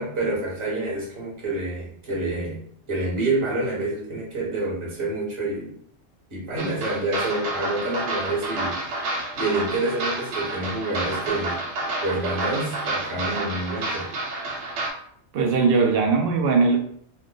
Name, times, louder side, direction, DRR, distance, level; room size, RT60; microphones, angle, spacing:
voice 1, 0.0-2.6 2.9-5.7 6.3-8.8 9.4-11.6 12.0-14.1, right 2 dB, 25° right, -5 dB, 1.0 m, -27 dB
sound 1, 6.6-14.9, right 2 dB, 80° right, 1.0 m, -29 dB
voice 2, 15.3-16.8, right 4 dB, 60° right, 2 dB, 0.6 m, -19 dB
2.3 x 2.2 x 3.7 m, 0.63 s
omnidirectional pair, 1.3 m